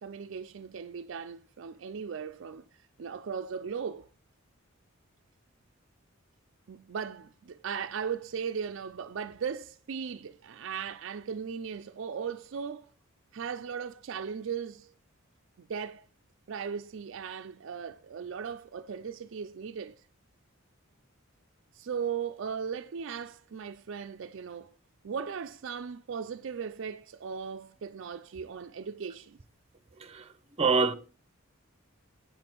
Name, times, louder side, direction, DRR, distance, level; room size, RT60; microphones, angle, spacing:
voice 1, 0.0-2.6 3.0-4.1 6.7-12.9 13.3-14.9 15.6-16.1 16.5-20.0 21.7-24.7 25.0-29.4, right 6 dB, 60° right, 0.4 m, -37 dB
voice 2, 30.6-30.9, right 4 dB, 30° right, 0.7 m, -25 dB
7.8 x 7.8 x 4.5 m
head